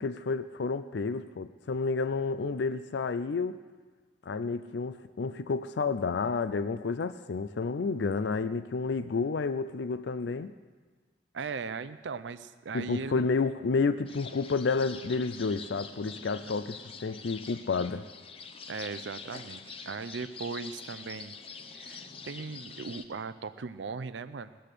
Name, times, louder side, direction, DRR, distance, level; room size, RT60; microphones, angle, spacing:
voice 1, 0.0-3.6 4.3-10.5 12.7-18.1, left 4 dB, 70° left, 12 dB, 0.5 m, -30 dB
voice 2, 11.3-13.3 16.2-16.3 18.7-21.4 21.7-24.6, right 4 dB, 75° right, 13 dB, 0.5 m, -38 dB
sound 1, 14.1-23.1, left 5 dB, 30° left, 0.7 m, -45 dB
20.0 x 7.7 x 6.7 m, 1.4 s
head